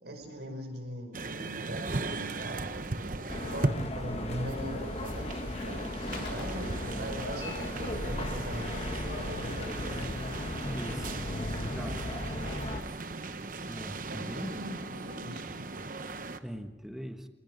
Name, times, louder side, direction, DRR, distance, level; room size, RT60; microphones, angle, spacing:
voice 1, 0.0-2.7 3.3-10.1 14.0-15.7, equal, 70° right, 3 dB, 5.7 m, -41 dB
sound 1, 1.1-16.4, right 3 dB, 45° right, 1.0 m, -38 dB
sound 2, 3.3-12.8, left 1 dB, 35° left, 1.3 m, -36 dB
sound 3, 5.0-15.5, left 4 dB, 80° left, 4.4 m, -54 dB
voice 2, 10.6-11.2 11.6-12.1 13.6-14.6 16.4-17.3, equal, ahead, 6 dB, 1.2 m, -41 dB
27.0 x 20.0 x 5.4 m, 1.1 s
head